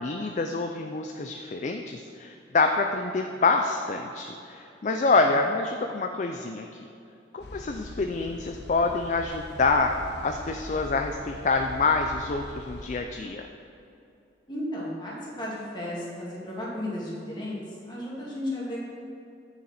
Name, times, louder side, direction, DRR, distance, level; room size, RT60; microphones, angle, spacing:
voice 1, 0.0-6.7 7.3-9.9 10.2-13.5, left 3 dB, 40° left, 4 dB, 0.4 m, -26 dB
sound 1, 7.4-13.0, left 1 dB, 65° left, 0.7 m, -42 dB
voice 2, 14.5-17.6 17.9-18.8, left 1 dB, 25° left, -5 dB, 2.1 m, -34 dB
9.5 x 7.1 x 4.3 m, 2.7 s
head